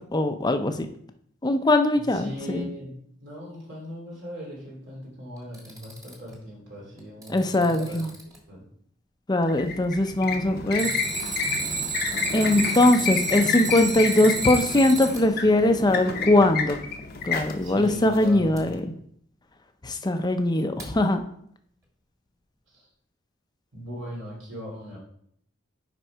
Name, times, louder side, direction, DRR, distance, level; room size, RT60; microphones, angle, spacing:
voice 1, 0.1-0.9 1.4-2.7 7.3-8.1 9.3-10.9 12.3-16.8 17.2-18.8 19.8-21.2, left 1 dB, 20° left, 7 dB, 0.6 m, -21 dB
voice 2, 1.9-8.0 8.5-8.6 10.7-11.0 17.6-18.8 22.7-22.8 23.7-25.0, equal, 65° right, -3 dB, 2.8 m, -39 dB
Alarm, 5.4-6.3 7.0-8.4 10.7-15.2 18.6-18.7 20.8-20.9, right 4 dB, 20° right, 1.6 m, -32 dB
sound 1, 9.4-18.8, left 5 dB, 50° left, 0.8 m, -30 dB
6.4 x 5.2 x 4.6 m, 0.67 s
head